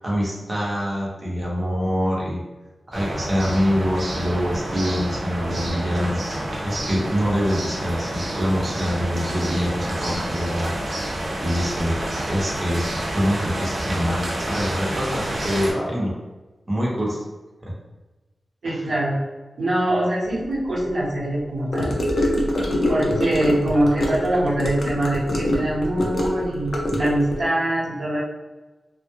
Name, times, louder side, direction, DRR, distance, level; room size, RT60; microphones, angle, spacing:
voice 1, 0.0-2.4 2.9-10.7 11.4-11.9 12.3-12.8 13.1-16.1 16.7-17.2 17.6-17.7 18.7-18.8, equal, 30° right, -4 dB, 0.8 m, -25 dB
sound 1, 2.9-15.7, right 1 dB, 60° right, 0.5 m, -29 dB
voice 2, 18.6-19.2 19.6-22.4 22.9-28.2, right 1 dB, 80° right, -6 dB, 0.9 m, -23 dB
Gurgling / Car passing by / Sink (filling or washing), 21.7-27.4, left 1 dB, 65° left, 0.4 m, -24 dB
2.2 x 2.0 x 2.9 m, 1.2 s
wide cardioid pair, 130°, 0 cm